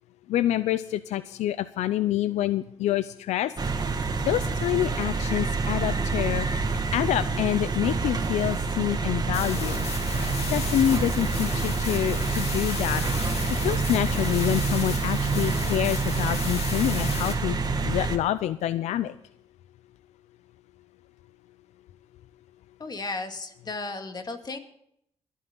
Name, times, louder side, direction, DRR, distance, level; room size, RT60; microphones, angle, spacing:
voice 1, 0.3-3.5 3.9-6.6 6.9-10.2 10.5-19.2, left 12 dB, 90° left, 14 dB, 0.5 m, -27 dB
sound 1, 3.6-18.2, right 4 dB, 35° right, 2.0 m, -27 dB
sound 2, 9.3-17.3, left 5 dB, 65° left, 2.9 m, -36 dB
voice 2, 22.8-24.6, left 3 dB, 40° left, 6 dB, 2.3 m, -34 dB
22.5 x 9.3 x 3.9 m, 0.71 s
cardioid pair, 80°, 11 cm